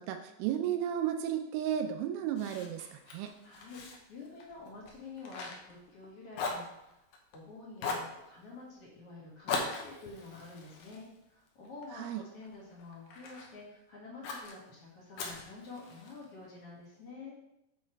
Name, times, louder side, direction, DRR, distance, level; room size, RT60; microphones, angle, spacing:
voice 1, 0.0-3.3 12.0-12.2, right 10 dB, 85° right, 5 dB, 2.4 m, -33 dB
Fire, 2.3-6.1 6.3-7.4 7.8-8.2 9.5-11.9 12.4-13.5 14.2-14.5 15.2-16.2, left 4 dB, 75° left, 2.0 m, -40 dB
voice 2, 3.4-7.0 7.3-17.4, left 3 dB, 45° left, -5 dB, 2.2 m, -49 dB
7.6 x 4.2 x 4.5 m, 0.84 s
omnidirectional pair, 4.5 m